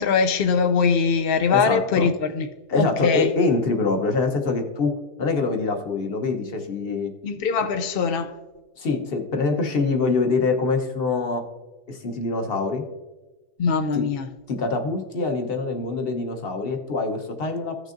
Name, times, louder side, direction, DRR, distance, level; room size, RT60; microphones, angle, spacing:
voice 1, 0.0-2.5 2.7-3.3 7.2-8.4 13.6-14.3, left 5 dB, 75° left, 0.5 m, -22 dB
voice 2, 1.5-2.1 2.7-4.9 5.2-7.1 8.8-11.4 11.9-12.8 13.9-14.0 14.5-17.9, left 3 dB, 45° left, 1.0 m, -24 dB
16.0 x 6.3 x 2.6 m
omnidirectional pair, 1.7 m